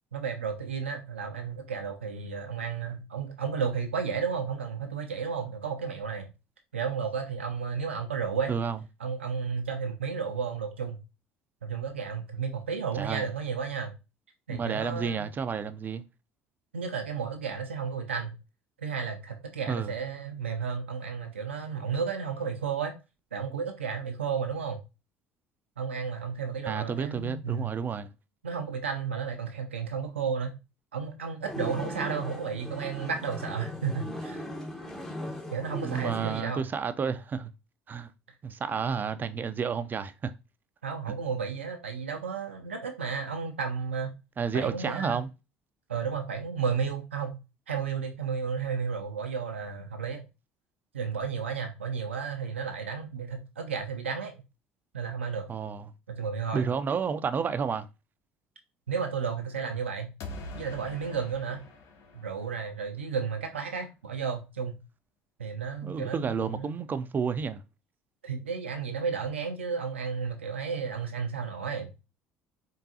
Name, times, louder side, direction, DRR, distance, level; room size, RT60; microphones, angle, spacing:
voice 1, 0.1-6.3 6.7-8.5 9.0-11.0 11.6-13.9 14.5-15.2 16.7-18.3 18.8-23.0 23.3-24.8 25.8-27.7 28.4-30.6 30.9-34.4 35.5-36.6 40.8-44.2 44.5-45.2 45.9-47.4 47.7-50.3 50.9-54.4 54.9-55.5 56.1-56.6 58.9-60.1 60.5-61.6 62.1-64.8 65.4-66.7 68.2-71.9, right 6 dB, 80° right, 0.5 m, -33 dB
voice 2, 12.9-13.3 14.5-16.0 19.7-19.9 26.6-28.1 35.8-37.5 37.9-38.1 38.4-40.3 44.4-45.3 55.5-55.9 56.5-57.9 65.8-67.6, right 6 dB, 30° right, 0.4 m, -31 dB
sound 1, 31.4-36.4, left 1 dB, 5° left, 0.8 m, -38 dB
sound 2, 60.2-63.1, left 2 dB, 50° left, 0.9 m, -44 dB
3.8 x 3.6 x 2.7 m
figure-of-eight pair, 60°, 6 cm